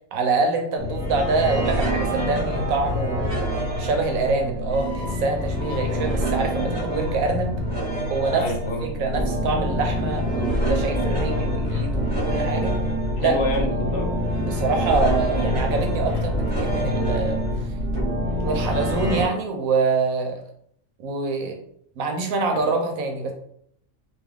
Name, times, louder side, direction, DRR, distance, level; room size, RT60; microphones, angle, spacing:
voice 1, 0.1-3.3 3.8-7.5 8.1-8.5 8.8-12.7 13.2-13.4 14.4-17.4 18.4-20.4 21.0-21.6 22.0-23.3, right 3 dB, 80° right, 3 dB, 1.1 m, -25 dB
sound 1, 0.8-19.2, equal, 45° right, 1.1 m, -25 dB
sound 2, 4.6-9.9, left 1 dB, ahead, 0.9 m, -41 dB
voice 2, 8.3-8.8 13.2-14.1 22.5-22.6, left 1 dB, 65° left, 2 dB, 0.8 m, -27 dB
2.6 x 2.3 x 3.4 m, 0.67 s
omnidirectional pair, 1.4 m